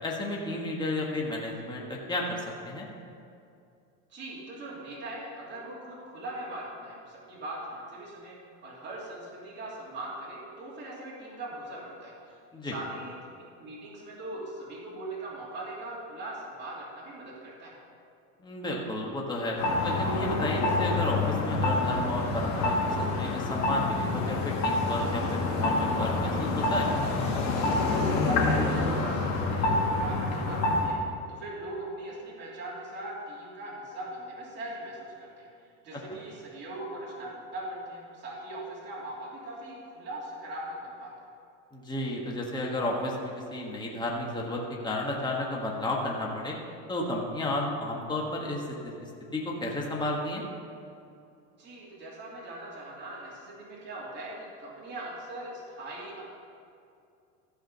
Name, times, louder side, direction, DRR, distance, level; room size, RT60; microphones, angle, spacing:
voice 1, 0.0-2.9 12.5-12.7 18.4-26.9 35.9-36.0 41.7-46.6 46.9-50.4, left 1 dB, 10° left, -2 dB, 1.5 m, -32 dB
voice 2, 4.1-8.4 8.6-12.4 12.6-17.7 28.1-31.0 31.3-41.1 51.5-56.2, right 1 dB, 30° right, -6 dB, 3.1 m, -40 dB
sound 1, 19.6-30.9, left 2 dB, 45° left, 2.2 m, -27 dB
14.5 x 5.1 x 6.7 m, 2.5 s
supercardioid pair, 135°, 37 cm